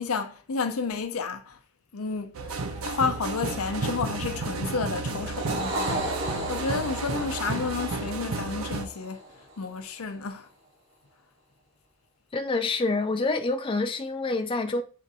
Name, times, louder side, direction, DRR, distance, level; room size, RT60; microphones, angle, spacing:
voice 1, 0.0-1.6 1.9-2.4 2.8-9.2 9.6-10.5, left 5 dB, 80° left, 0.6 m, -31 dB
sound 1, 2.3-8.9, right 3 dB, 75° right, 0.6 m, -32 dB
sound 2, 5.1-9.7, right 1 dB, 55° right, 1.1 m, -34 dB
voice 2, 12.3-14.8, left 3 dB, 25° left, 0.3 m, -27 dB
7.2 x 2.5 x 2.7 m
head